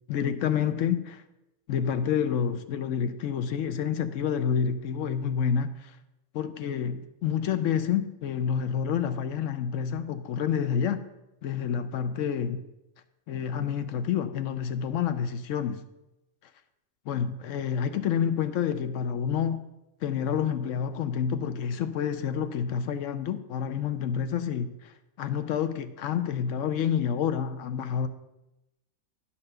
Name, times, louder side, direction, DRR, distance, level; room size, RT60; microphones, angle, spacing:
voice 1, 0.1-1.2 1.7-5.9 6.3-11.0 11.4-12.6 13.3-15.8 17.1-19.6 20.0-24.9 25.2-28.1, left 8 dB, 65° left, 0.9 m, -28 dB
9.8 x 4.2 x 6.5 m
omnidirectional pair, 1.5 m